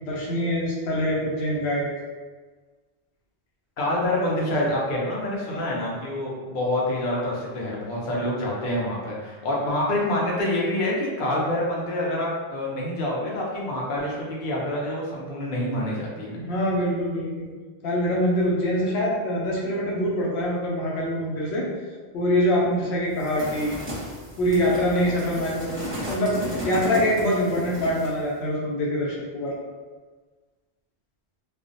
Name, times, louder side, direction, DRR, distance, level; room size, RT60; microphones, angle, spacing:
voice 1, 0.0-1.9 5.5-5.6 16.4-17.5 17.8-21.7 22.1-23.8 24.4-25.8 26.1-29.6, equal, 80° left, -3 dB, 0.9 m, -24 dB
voice 2, 3.8-16.4, left 1 dB, 55° left, -4 dB, 0.6 m, -27 dB
sound 1, 23.2-28.2, equal, 15° right, 0.7 m, -34 dB
2.3 x 2.0 x 2.5 m, 1.4 s
omnidirectional pair, 1.1 m